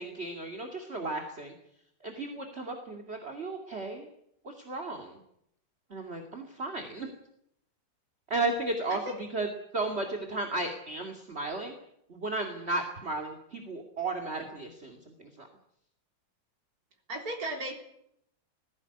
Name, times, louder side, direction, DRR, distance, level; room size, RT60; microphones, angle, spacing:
voice 1, 0.0-1.5 2.0-4.1 4.4-5.2 5.9-7.1 8.3-9.5 9.7-11.7 12.1-15.5, right 2 dB, 35° right, 3 dB, 2.6 m, -34 dB
voice 2, 17.1-17.7, right 1 dB, 50° right, 3 dB, 4.2 m, -35 dB
20.0 x 16.0 x 9.9 m, 0.75 s
omnidirectional pair, 2.0 m